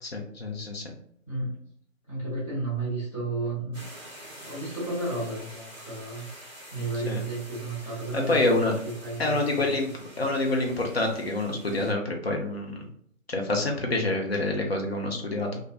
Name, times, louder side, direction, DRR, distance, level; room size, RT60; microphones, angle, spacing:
voice 1, 0.0-0.8 6.9-7.2 8.3-8.7 9.2-9.9 10.2-12.9 13.3-15.6, left 2 dB, 50° left, 1 dB, 0.6 m, -27 dB
voice 2, 2.1-3.8 4.4-6.3 6.7-8.7 9.0-9.7, right 2 dB, 20° left, -8 dB, 0.9 m, -32 dB
sound 1, 3.7-11.9, right 1 dB, 20° right, 0.8 m, -47 dB
2.4 x 2.3 x 2.3 m, 0.65 s
figure-of-eight pair, 150°, 41 cm